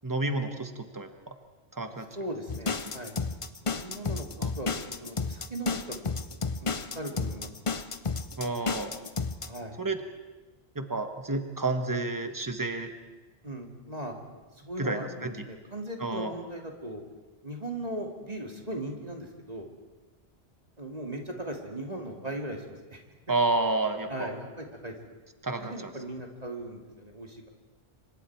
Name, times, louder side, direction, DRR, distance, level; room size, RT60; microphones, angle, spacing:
voice 1, 0.0-1.3 1.7-2.1 2.8-2.9 4.4-4.5 8.4-8.9 9.8-10.0 10.7-12.9 14.8-15.5 16.0-16.3 23.3-24.4 25.4-25.9, right 2 dB, 20° right, 7 dB, 1.5 m, -30 dB
voice 2, 2.1-3.1 3.6-4.7 5.0-5.8 6.6-7.7 9.4-9.8 13.4-14.1 14.6-17.0 17.4-19.7 20.8-23.0 24.1-24.9 25.6-27.5, right 1 dB, 40° right, 2 dB, 2.5 m, -38 dB
sound 1, 2.5-9.6, left 4 dB, 35° left, 0.8 m, -32 dB
26.5 x 25.0 x 4.7 m, 1.2 s
omnidirectional pair, 1.1 m